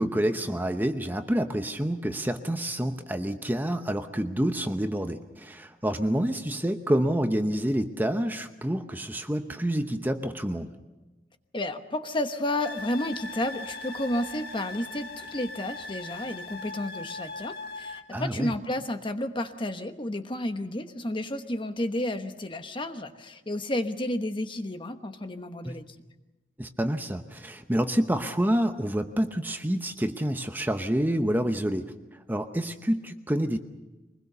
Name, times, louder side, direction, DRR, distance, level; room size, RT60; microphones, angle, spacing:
voice 1, 0.0-10.7 18.1-18.5 25.6-25.7 26.6-31.9 32.3-33.6, right 1 dB, 10° right, 7 dB, 0.8 m, -28 dB
voice 2, 11.5-25.8, left 1 dB, 25° left, 8 dB, 1.1 m, -31 dB
sound 1, 12.6-18.0, left 2 dB, 55° left, 1.8 m, -40 dB
24.0 x 20.5 x 6.7 m, 1.1 s
head